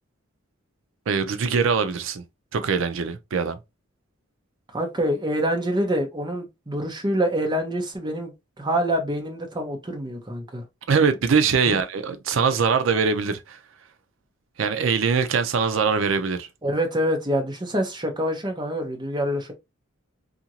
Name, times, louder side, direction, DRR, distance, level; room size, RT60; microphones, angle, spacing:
voice 1, 1.1-2.2 2.5-3.6 10.9-13.6 14.6-16.5, right 5 dB, 65° right, 0.5 m, -22 dB
voice 2, 4.7-10.6 11.7-11.8 16.6-19.5, equal, 20° right, 0.8 m, -26 dB
2.8 x 2.5 x 2.8 m
head